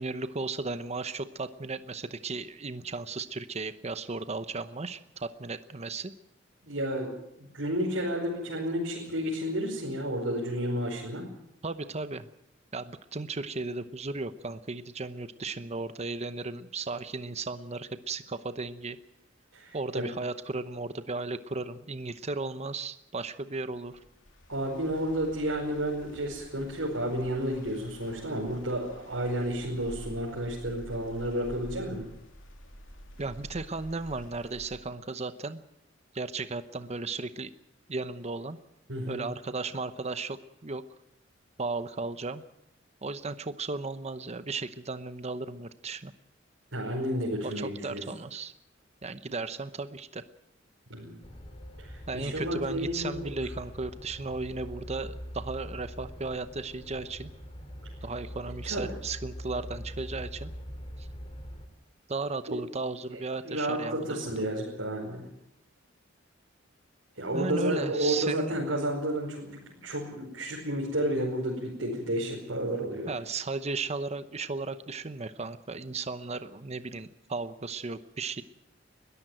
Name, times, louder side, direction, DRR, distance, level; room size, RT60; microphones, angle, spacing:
voice 1, 0.0-6.1 11.6-12.3 12.7-19.0 19.7-24.0 33.2-35.6 36.1-37.5 37.9-38.6 39.1-40.4 40.6-40.8 41.6-42.4 43.0-46.1 47.4-48.5 49.0-50.2 52.1-57.3 58.0-60.5 61.0-61.1 62.1-64.3 67.3-68.5 73.1-78.4, right 3 dB, 35° right, 11 dB, 0.9 m, -35 dB
voice 2, 6.6-11.2 19.5-20.1 24.5-32.0 38.9-39.2 46.7-48.0 50.9-51.3 51.8-53.4 58.6-58.9 62.5-62.6 63.1-65.3 67.2-73.1, right 1 dB, 90° right, -4 dB, 5.1 m, -31 dB
sound 1, 23.7-34.8, equal, 80° left, 3.2 m, -49 dB
sound 2, 51.2-61.7, equal, 30° left, 3.1 m, -43 dB
21.5 x 14.0 x 9.1 m, 0.84 s
head